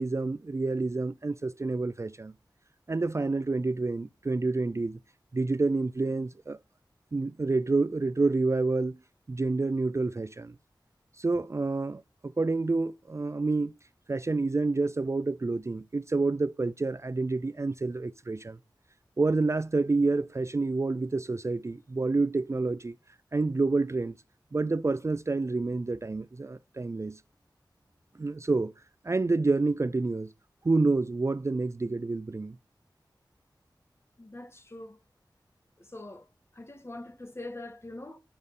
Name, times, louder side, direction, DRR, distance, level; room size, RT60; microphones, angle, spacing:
voice 1, 0.0-2.3 2.9-5.0 5.3-6.6 7.1-9.0 9.3-10.5 11.2-13.7 14.1-18.6 19.2-22.9 23.3-24.1 24.5-27.2 28.2-28.7 29.0-30.3 30.6-32.6, right 3 dB, 35° right, 0.4 m, -28 dB
voice 2, 34.2-35.0 35.8-36.3 36.5-38.2, left 2 dB, 30° left, 1.8 m, -43 dB
8.7 x 5.3 x 5.4 m
wide cardioid pair, 45°, 8 cm